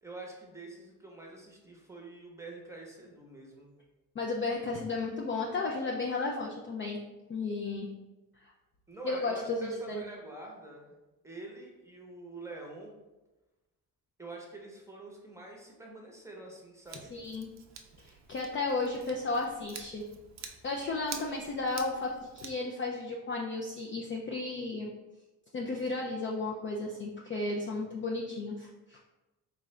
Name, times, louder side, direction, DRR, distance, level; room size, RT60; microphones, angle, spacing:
voice 1, 0.0-3.7 8.9-10.9 11.2-12.9 14.2-17.1, right 2 dB, 5° right, -1 dB, 0.8 m, -46 dB
voice 2, 4.2-7.0 7.3-7.9 8.4-8.5 9.0-10.0 17.1-17.5 18.0-20.0 20.6-24.9 25.5-29.0, left 3 dB, 30° left, -1 dB, 0.4 m, -34 dB
Scissors, 16.8-22.5, right 6 dB, 45° right, 0.5 m, -48 dB
3.8 x 2.4 x 3.1 m, 1.1 s
cardioid pair, 90°, 41 cm